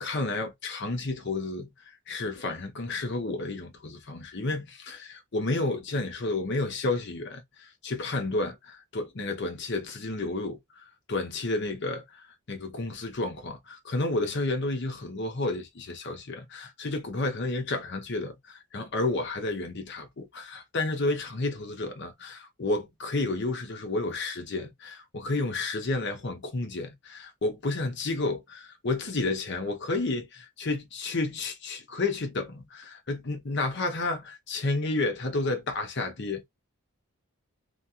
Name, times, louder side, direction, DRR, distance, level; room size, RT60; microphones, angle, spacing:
voice 1, 0.0-36.5, left 2 dB, 50° left, 0.7 m, -31 dB
2.9 x 2.6 x 2.3 m
head